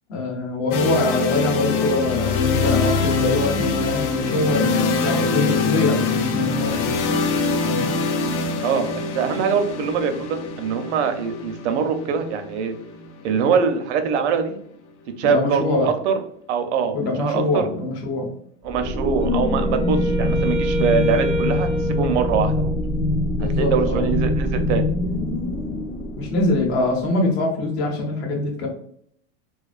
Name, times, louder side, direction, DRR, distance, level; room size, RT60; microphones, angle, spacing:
voice 1, 0.1-7.0 7.6-8.0 15.2-15.9 16.9-18.3 23.4-24.1 26.2-28.7, left 2 dB, 65° left, 1 dB, 0.9 m, -24 dB
sound 1, 0.7-14.6, left 4 dB, 85° left, 0.5 m, -24 dB
voice 2, 8.6-12.7 13.2-14.6 15.2-16.1 16.5-17.6 18.6-22.8 23.4-24.9, right 6 dB, 75° right, 7 dB, 0.6 m, -23 dB
sound 2, 18.7-26.9, left 1 dB, 30° left, 0.8 m, -24 dB
Wind instrument woodwind instrument, 19.2-23.1, equal, 15° right, 0.4 m, -27 dB
2.4 x 2.2 x 2.4 m, 0.66 s
supercardioid pair, 165°, 34 cm